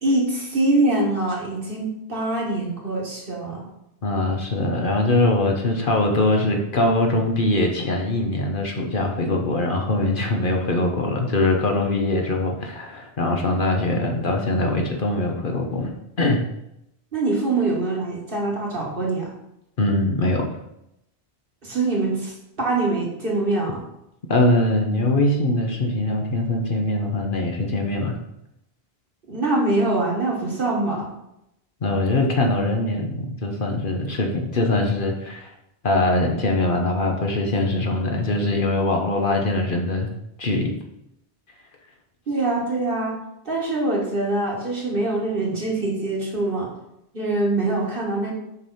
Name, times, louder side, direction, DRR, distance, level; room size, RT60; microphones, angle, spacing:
voice 1, 0.0-3.7 17.1-19.3 21.6-23.8 29.3-31.1 42.3-43.2 43.5-46.7 47.1-48.3, right 2 dB, 60° right, -3 dB, 2.1 m, -24 dB
voice 2, 4.0-16.4 19.8-20.4 24.3-28.2 31.8-35.5 35.8-40.1 40.4-40.7, left 2 dB, 55° left, 2 dB, 1.2 m, -22 dB
6.5 x 5.4 x 4.3 m, 0.82 s
omnidirectional pair, 1.1 m